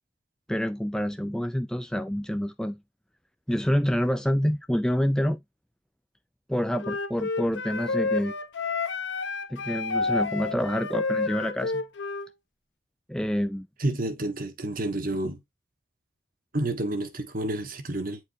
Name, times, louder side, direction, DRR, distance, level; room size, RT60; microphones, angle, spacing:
voice 1, 0.5-2.8 3.5-5.4 6.5-8.3 9.5-11.8 13.1-13.7, equal, 5° left, 0.3 m, -27 dB
Wind instrument woodwind instrument, 6.8-12.3, left 3 dB, 60° left, 0.9 m, -29 dB
voice 2, 13.8-15.4 16.5-18.2, right 1 dB, 45° right, 1.4 m, -29 dB
9.4 x 4.7 x 2.7 m
head